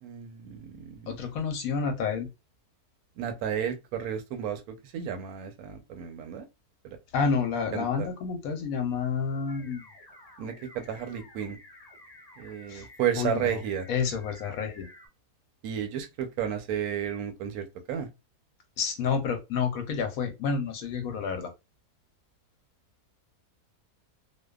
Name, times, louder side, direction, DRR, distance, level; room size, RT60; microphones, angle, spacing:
voice 1, 0.0-1.2 3.2-6.5 6.8-7.0 7.7-8.1 10.4-11.6 12.4-13.9 15.6-18.1, right 9 dB, 75° right, 1.0 m, -32 dB
voice 2, 1.1-2.3 7.1-9.9 12.7-12.8 13.2-13.5 13.9-14.9 18.8-21.5, left 5 dB, 70° left, 1.0 m, -29 dB
sound 1, 9.5-15.1, left 1 dB, 5° left, 1.1 m, -52 dB
2.6 x 2.2 x 2.3 m
omnidirectional pair, 1.6 m